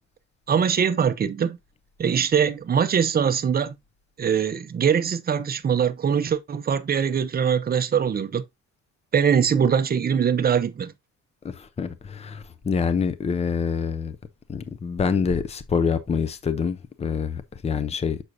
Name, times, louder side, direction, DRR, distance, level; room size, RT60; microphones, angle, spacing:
voice 1, 0.5-1.6 2.0-3.8 4.2-8.4 9.1-10.9, right 7 dB, 30° right, 0.6 m, -22 dB
voice 2, 11.4-14.2 14.5-18.2, left 5 dB, 20° left, 0.6 m, -26 dB
6.2 x 6.2 x 2.6 m
cardioid pair, 145°, 30 cm